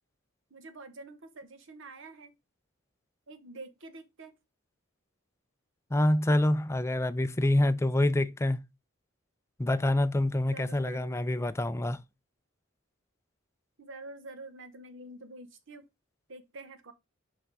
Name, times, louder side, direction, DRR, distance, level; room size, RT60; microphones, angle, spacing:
voice 1, 0.5-2.3 3.3-4.3 10.4-11.2 13.8-15.8 16.3-16.9, right 2 dB, 65° right, 1.1 m, -47 dB
voice 2, 5.9-8.7 9.6-12.0, left 1 dB, 15° left, 0.4 m, -26 dB
5.8 x 5.6 x 4.0 m
head